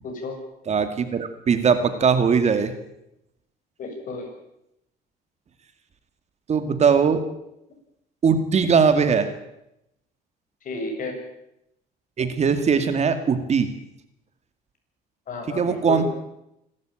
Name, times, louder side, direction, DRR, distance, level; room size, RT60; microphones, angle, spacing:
voice 1, 0.0-0.4 3.8-4.3 10.6-11.2 15.3-16.0, left 3 dB, 50° left, 3 dB, 7.8 m, -32 dB
voice 2, 0.7-2.7 6.5-7.2 8.2-9.3 12.2-13.7 15.5-16.0, right 6 dB, 40° right, 9 dB, 2.3 m, -20 dB
26.0 x 13.5 x 9.0 m, 0.85 s
cardioid pair, 110°, 17 cm